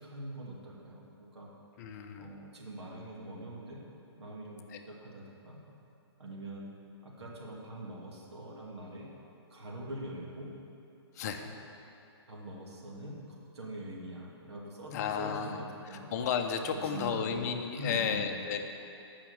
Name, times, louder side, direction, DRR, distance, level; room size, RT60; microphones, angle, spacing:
voice 1, 0.0-1.5 2.2-3.8 4.2-5.6 6.2-6.7 7.0-9.1 9.5-10.5 11.4-11.6 12.3-16.1 16.7-18.4, right 1 dB, 75° right, -3 dB, 2.4 m, -43 dB
voice 2, 1.8-2.3 4.7-4.8 11.1-11.5 14.9-15.6 15.9-18.6, left 7 dB, 40° left, 5 dB, 0.8 m, -33 dB
8.6 x 6.0 x 8.0 m, 2.7 s
hypercardioid pair, 140°, 14 cm